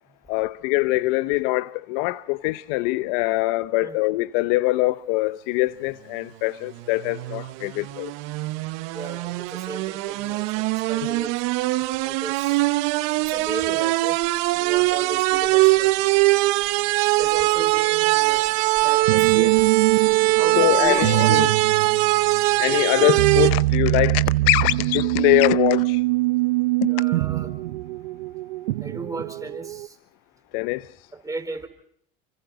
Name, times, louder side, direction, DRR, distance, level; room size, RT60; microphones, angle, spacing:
voice 1, 0.3-8.1 20.6-21.5 22.6-26.0 26.8-26.9 30.5-30.9, left 20 dB, 70° left, 0.7 m, -23 dB
sound 1, 6.8-23.5, right 21 dB, 65° right, 1.1 m, -21 dB
voice 2, 8.9-11.4 12.0-12.6 13.2-14.2 14.5-15.9 17.2-18.5 18.8-19.6 20.4-21.5 26.9-27.5 28.8-30.0 31.1-31.7, right 3 dB, 10° right, 4.3 m, -35 dB
sound 2, 19.1-29.9, right 19 dB, 90° right, 0.8 m, -24 dB
29.0 x 25.5 x 3.8 m
supercardioid pair, 105°, 29 cm